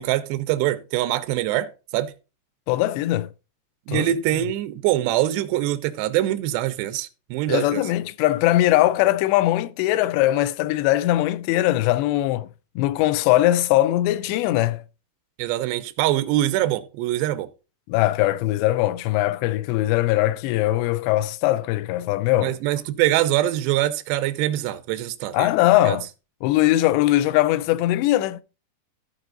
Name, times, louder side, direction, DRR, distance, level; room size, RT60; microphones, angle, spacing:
voice 1, 0.0-2.1 3.9-7.8 15.4-17.5 22.4-25.5 25.8-26.0, right 14 dB, 85° right, 2.9 m, -24 dB
voice 2, 2.7-3.3 3.9-4.1 7.5-12.5 12.8-14.8 17.9-22.6 25.3-26.1 26.4-28.4, left 15 dB, 85° left, 2.8 m, -20 dB
14.5 x 4.8 x 3.9 m
omnidirectional pair, 4.9 m